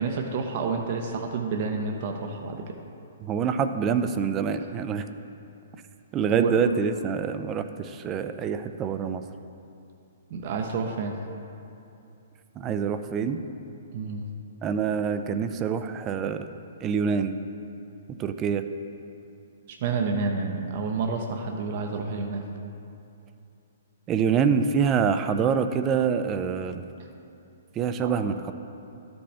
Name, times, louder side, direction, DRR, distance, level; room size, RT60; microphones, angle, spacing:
voice 1, 0.0-2.7 6.3-6.6 10.3-11.1 13.9-14.2 19.8-22.4 28.0-28.2, right 4 dB, 50° right, 3 dB, 0.7 m, -29 dB
voice 2, 3.2-5.0 6.1-9.2 12.6-13.4 14.6-16.5 16.8-17.4 18.1-18.7 24.1-26.8 27.8-28.5, right 6 dB, 25° right, 9 dB, 0.4 m, -26 dB
13.0 x 5.3 x 3.4 m, 2.7 s
hypercardioid pair, 130°, 0 cm